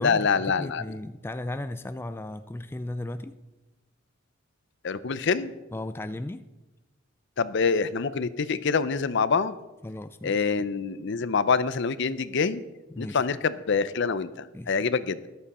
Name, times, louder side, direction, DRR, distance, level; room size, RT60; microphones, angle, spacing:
voice 1, 0.0-0.8 4.8-5.5 7.4-9.5 10.2-12.6 13.0-15.3, left 5 dB, 60° left, 15 dB, 0.6 m, -26 dB
voice 2, 0.6-3.4 5.7-6.5 9.8-10.4 12.9-13.3 14.5-14.8, left 1 dB, 10° left, 11 dB, 0.3 m, -35 dB
13.5 x 11.5 x 4.2 m, 1.1 s
head